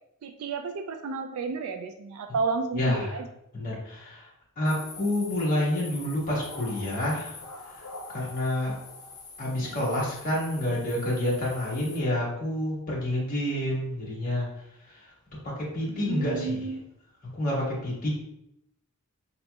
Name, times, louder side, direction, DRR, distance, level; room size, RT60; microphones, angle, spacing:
voice 1, 0.2-3.2 9.6-9.8 15.9-16.8, right 4 dB, 75° right, 6 dB, 0.3 m, -32 dB
voice 2, 2.7-3.2 3.5-4.3 4.6-7.4 7.7-7.8 8.1-8.8 9.4-14.5 14.8-15.1 15.4-16.6 17.3-18.1, left 1 dB, 40° left, -6 dB, 1.3 m, -28 dB
sound 1, 4.7-12.0, left 3 dB, 80° left, 0.8 m, -45 dB
4.1 x 2.9 x 2.2 m, 0.81 s
head